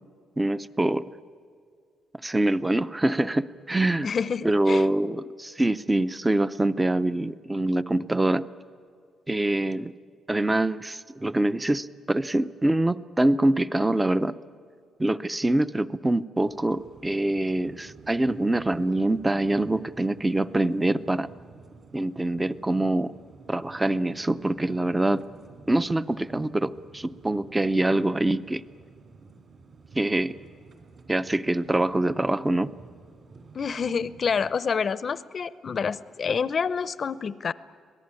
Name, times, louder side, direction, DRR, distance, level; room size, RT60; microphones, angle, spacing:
voice 1, 0.4-1.0 2.2-4.1 4.4-8.4 9.3-9.9 10.3-14.3 15.0-21.3 21.9-23.1 23.5-25.2 25.7-28.6 29.9-30.4 31.1-32.7, right 1 dB, 10° right, 15 dB, 0.6 m, -24 dB
voice 2, 4.0-4.9 33.5-37.5, left 6 dB, 40° left, 17 dB, 0.7 m, -28 dB
sound 1, 16.4-34.5, right 4 dB, 45° right, 2.9 m, -51 dB
25.5 x 18.0 x 9.7 m, 2.2 s
cardioid pair, 130°, 0 cm